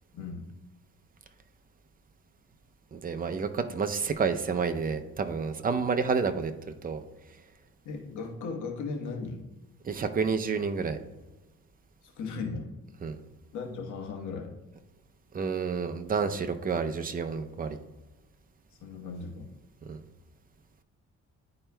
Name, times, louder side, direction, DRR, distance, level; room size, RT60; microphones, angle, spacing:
voice 1, 2.9-6.5 6.8-7.0 9.8-11.0 13.0-13.2 15.3-17.8 19.9-20.0, right 5 dB, 30° right, 7 dB, 0.6 m, -29 dB
voice 2, 7.8-9.5 12.0-12.7 13.5-14.5 18.8-19.5, left 4 dB, 75° left, 1 dB, 1.3 m, -37 dB
10.5 x 4.3 x 2.3 m, 1.1 s
cardioid pair, 90°, 30 cm